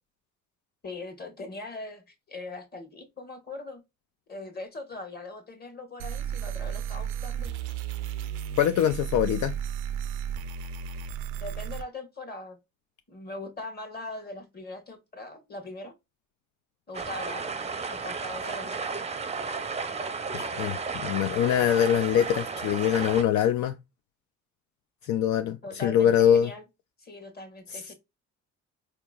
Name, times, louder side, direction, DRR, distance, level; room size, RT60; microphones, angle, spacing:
voice 1, 0.8-3.8 4.3-7.5 11.4-12.6 13.1-15.9 16.9-17.5 17.9-18.9 25.6-26.6 27.0-27.9, left 2 dB, 30° left, 1.3 m, -40 dB
sound 1, 6.0-11.8, right 8 dB, 90° right, 0.5 m, -34 dB
voice 2, 8.6-9.5 20.3-23.8 25.0-26.5 27.7-27.9, left 9 dB, 70° left, 0.4 m, -24 dB
sound 2, 16.9-23.2, right 4 dB, 20° right, 0.5 m, -33 dB
4.4 x 2.9 x 2.3 m
cardioid pair, 90°, 30 cm